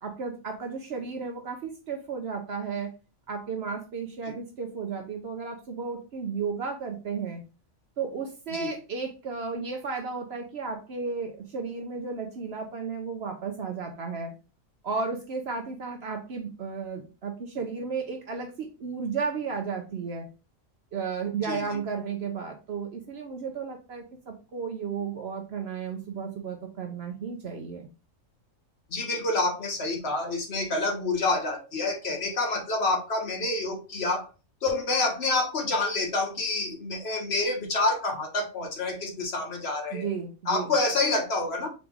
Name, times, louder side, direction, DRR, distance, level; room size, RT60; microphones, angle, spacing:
voice 1, 0.0-2.9 3.3-7.4 8.0-14.3 14.8-20.3 20.9-27.9 39.9-40.7, right 5 dB, 55° right, 3 dB, 0.8 m, -33 dB
voice 2, 21.4-21.8 28.9-34.3 34.6-40.1 40.5-41.7, left 2 dB, 50° left, 2 dB, 1.2 m, -28 dB
3.9 x 3.3 x 3.5 m, 0.32 s
omnidirectional pair, 1.4 m